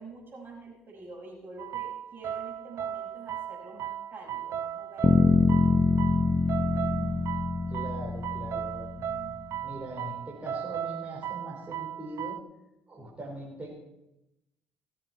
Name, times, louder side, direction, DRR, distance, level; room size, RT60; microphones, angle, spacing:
voice 1, 0.0-5.3, right 3 dB, 40° right, -1 dB, 5.6 m, -47 dB
sound 1, 1.6-12.4, right 10 dB, 55° right, 0.4 m, -36 dB
sound 2, 5.0-9.1, left 3 dB, 20° left, 0.7 m, -25 dB
voice 2, 6.5-7.2 7.7-12.4 12.9-13.7, right 1 dB, 20° right, -4 dB, 4.2 m, -41 dB
18.5 x 7.7 x 4.5 m, 0.91 s
hypercardioid pair, 55°, 6 cm